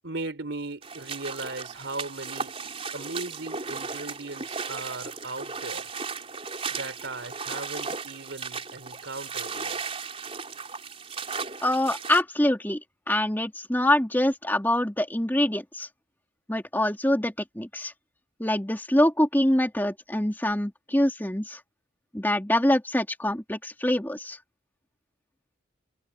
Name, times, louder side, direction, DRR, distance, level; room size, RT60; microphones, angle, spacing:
voice 1, 0.0-2.6 2.9-5.8 6.7-9.8, right 2 dB, 75° right, 3.7 m, -37 dB
sound 1, 0.8-12.2, right 5 dB, 30° right, 4.6 m, -36 dB
voice 2, 11.6-12.8 13.1-15.9 16.5-17.9 18.4-21.6 22.1-24.4, left 1 dB, 10° left, 2.7 m, -25 dB
head